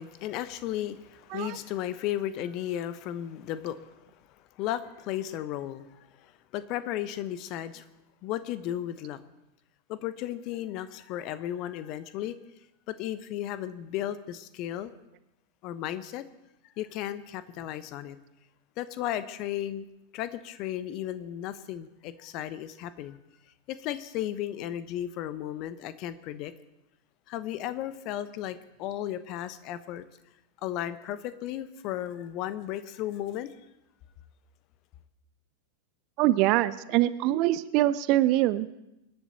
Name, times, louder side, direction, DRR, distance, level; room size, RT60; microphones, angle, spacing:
voice 1, 0.0-3.9 4.6-7.8 8.2-9.2 9.9-12.4 12.9-14.9 15.6-16.2 16.8-18.2 18.8-19.9 20.1-23.2 23.7-26.5 27.3-30.1 30.6-33.5, left 12 dB, 40° left, 14 dB, 1.0 m, -34 dB
voice 2, 36.2-38.7, right 15 dB, 40° right, 15 dB, 0.6 m, -24 dB
25.5 x 10.5 x 4.2 m, 0.91 s
figure-of-eight pair, 90°, 0 cm